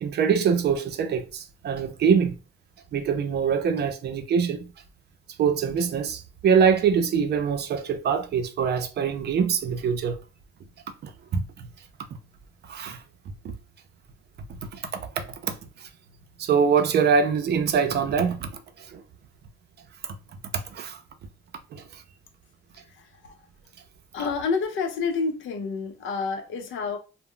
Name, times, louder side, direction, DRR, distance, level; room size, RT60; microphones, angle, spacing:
voice 1, 0.0-2.4 2.9-4.7 5.4-10.2 11.0-11.7 12.7-13.0 13.4-13.5 14.6-15.5 15.8-15.9 16.4-18.5 18.8-19.0 20.0-20.1 20.5-21.0 21.7-22.0, right 6 dB, 55° right, 0.5 m, -24 dB
voice 2, 22.8-23.5 24.1-27.0, left 5 dB, 80° left, 0.6 m, -29 dB
2.2 x 2.0 x 3.6 m
cardioid pair, 90°, 20 cm